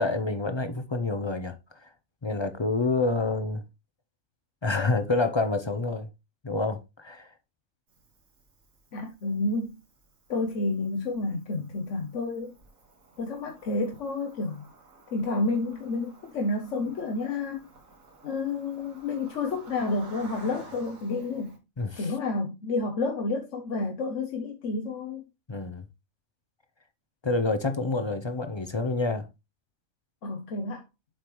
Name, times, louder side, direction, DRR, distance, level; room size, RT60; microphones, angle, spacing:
voice 1, 0.0-1.9 2.2-3.6 4.6-6.1 6.4-7.3 21.8-22.1 25.5-25.8 27.2-29.3, left 3 dB, 30° left, 0.5 m, -28 dB
Cricket, 7.9-21.6, right 3 dB, 85° right, 2.1 m, -53 dB
voice 2, 8.9-9.8 10.3-12.6 13.2-14.7 15.1-17.7 18.2-21.5 22.0-25.2 30.2-30.8, left 3 dB, 65° left, 1.2 m, -30 dB
7.5 x 5.1 x 3.0 m
omnidirectional pair, 1.4 m